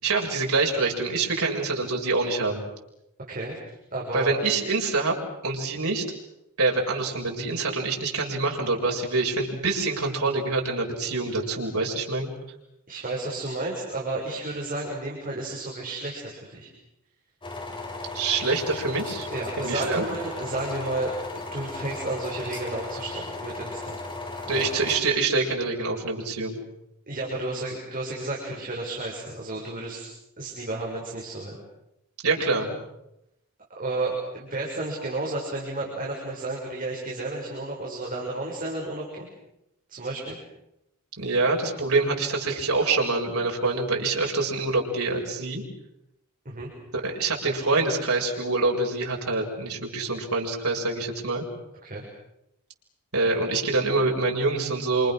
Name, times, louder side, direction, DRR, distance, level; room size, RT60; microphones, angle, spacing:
voice 1, 0.0-2.6 4.1-5.2 5.4-6.0 6.6-12.3 18.1-19.3 19.6-20.0 24.5-26.6 32.2-32.8 41.2-45.6 46.9-51.4 53.1-55.1, right 3 dB, 80° right, 0 dB, 7.1 m, -25 dB
voice 2, 3.3-3.6 3.9-4.3 12.9-16.7 19.3-24.0 24.5-24.7 27.1-30.1 30.4-31.6 33.8-39.3 39.9-40.4 46.5-46.7 51.8-52.0, right 2 dB, 40° right, -2 dB, 6.8 m, -32 dB
sound 1, 17.4-25.0, left 3 dB, 25° left, 5.0 m, -36 dB
29.0 x 28.5 x 6.6 m, 0.85 s
head